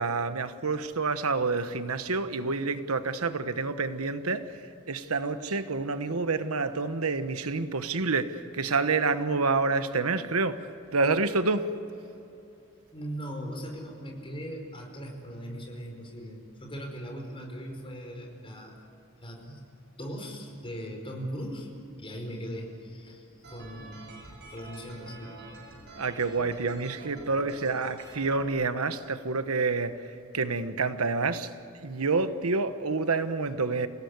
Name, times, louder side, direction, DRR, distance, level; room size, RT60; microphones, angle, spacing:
voice 1, 0.0-11.7 26.0-33.9, right 3 dB, 90° right, 1.2 m, -28 dB
voice 2, 12.9-18.8 19.2-19.7 20.0-24.1 24.5-25.4, equal, 25° left, 4.9 m, -39 dB
sound 1, 23.4-28.5, right 2 dB, 55° right, 7.3 m, -47 dB
28.5 x 18.0 x 9.7 m
head